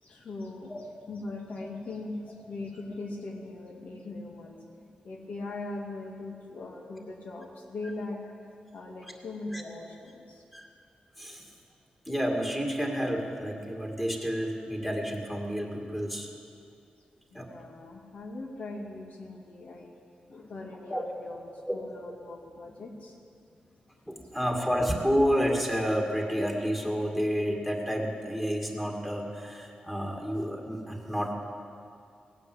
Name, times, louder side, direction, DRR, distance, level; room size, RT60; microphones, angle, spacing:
voice 1, 0.0-8.2 8.7-10.4 17.3-20.0 20.3-23.2 23.9-24.3, left 2 dB, 65° left, 0 dB, 2.3 m, -40 dB
voice 2, 12.1-16.3 17.3-17.5 20.9-21.0 21.7-21.8 24.1-31.3, equal, 5° left, 0 dB, 2.3 m, -30 dB
18.0 x 9.5 x 8.0 m, 2.4 s
wide cardioid pair, 115°, 3 cm